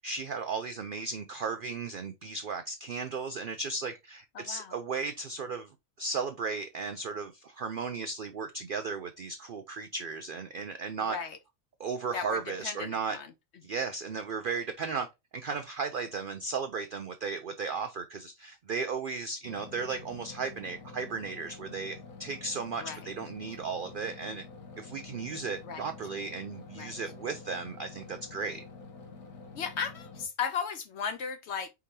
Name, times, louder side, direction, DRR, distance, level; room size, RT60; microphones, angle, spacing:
voice 1, 0.0-5.7 6.0-11.2 11.8-13.2 13.6-15.1 15.3-24.4 24.8-28.6, right 4 dB, 85° right, 0.4 m, -35 dB
voice 2, 4.3-4.8 11.1-11.4 12.1-13.3 22.8-23.1 25.6-25.9 26.8-27.0 29.5-31.7, left 6 dB, 60° left, 0.8 m, -36 dB
sound 1, 19.4-30.3, left 4 dB, 85° left, 1.4 m, -48 dB
4.8 x 3.5 x 2.7 m
omnidirectional pair, 1.5 m